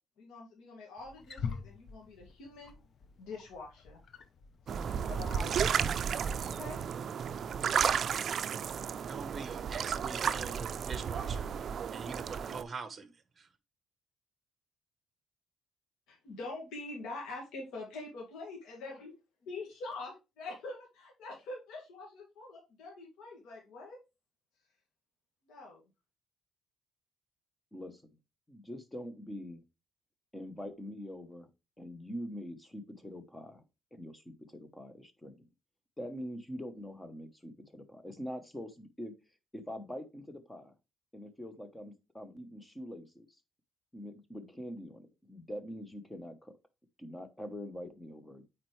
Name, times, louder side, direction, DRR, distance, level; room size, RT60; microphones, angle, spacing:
voice 1, 0.2-2.8 3.2-4.0 4.7-5.8 6.4-6.8 16.1-19.1 19.4-24.0 25.5-25.8, left 2 dB, 90° left, 2.1 m, -45 dB
Wild animals, 1.0-9.5, left 6 dB, 40° left, 0.7 m, -47 dB
sound 1, 4.7-12.6, right 7 dB, 45° right, 0.4 m, -33 dB
voice 2, 9.1-13.5, right 4 dB, 25° right, 1.1 m, -45 dB
voice 3, 27.7-28.1 28.5-29.6 30.3-31.5 31.8-33.6 33.9-35.5 36.0-39.1 39.5-40.7 41.1-43.3 43.9-46.5 47.0-48.4, equal, 10° left, 1.0 m, -44 dB
8.8 x 4.4 x 3.2 m
cardioid pair, 145°, 0 cm